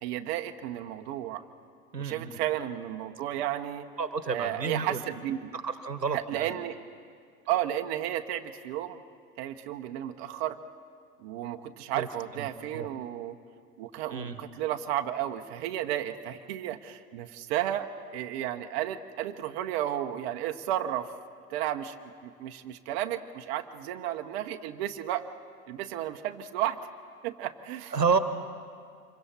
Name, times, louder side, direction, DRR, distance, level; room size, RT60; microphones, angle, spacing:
voice 1, 0.0-1.4 2.0-3.9 4.3-5.5 6.1-6.7 7.5-9.0 9.4-10.6 11.2-13.4 13.8-21.1 21.5-21.9 22.2-25.3 25.7-26.8 27.2-27.9, right 12 dB, 40° right, 6 dB, 1.1 m, -33 dB
voice 2, 1.9-2.3 4.0-5.0 5.5-6.5 12.0-12.1 12.3-12.9 14.1-14.4 27.9-28.2, right 5 dB, 85° right, 12 dB, 1.3 m, -30 dB
26.0 x 23.0 x 4.4 m, 2.1 s
figure-of-eight pair, 100°, 48 cm